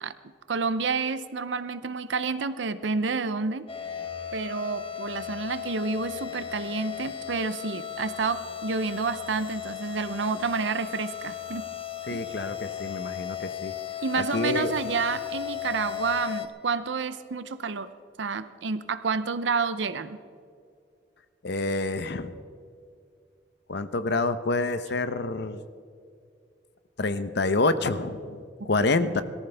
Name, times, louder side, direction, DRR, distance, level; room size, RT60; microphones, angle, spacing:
voice 1, 0.5-3.7 4.3-11.7 12.1-12.5 14.0-17.9 18.2-20.2 28.6-28.7 29.0-29.2, right 4 dB, 85° right, 13 dB, 0.6 m, -29 dB
sound 1, 3.7-16.5, left 10 dB, 30° left, 0.9 m, -36 dB
voice 2, 12.1-13.7 14.2-14.7 21.4-22.3 23.7-25.6 27.0-28.4 28.6-29.2, left 3 dB, 65° left, 11 dB, 0.8 m, -27 dB
22.0 x 14.0 x 3.4 m, 2.3 s
head